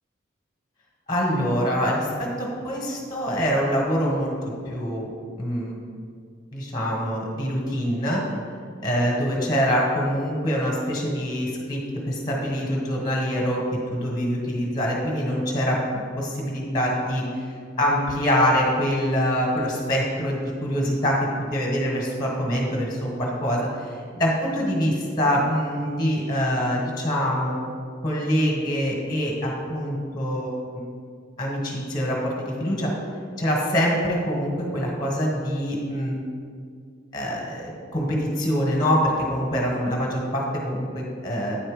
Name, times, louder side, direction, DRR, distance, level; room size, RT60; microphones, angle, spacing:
voice 1, 1.1-4.3 4.6-5.1 5.4-5.7 6.5-8.2 8.8-11.8 12.0-13.6 13.9-17.4 17.8-21.2 21.5-23.9 24.2-27.6 28.0-30.8 31.4-32.9 33.4-36.2 37.1-41.5, equal, 20° left, -2 dB, 1.3 m, -25 dB
8.9 x 4.4 x 5.0 m, 2.2 s
head